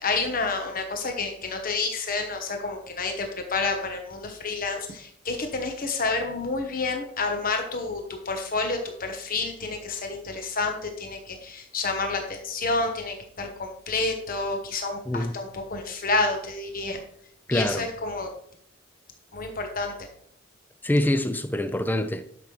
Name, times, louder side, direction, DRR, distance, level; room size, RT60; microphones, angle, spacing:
voice 1, 0.0-17.0 17.5-18.3 19.3-19.9, left 3 dB, 45° left, 1.1 m, -29 dB
voice 2, 17.5-17.9 20.8-22.3, left 1 dB, 10° left, 0.5 m, -25 dB
10.5 x 6.0 x 3.2 m
head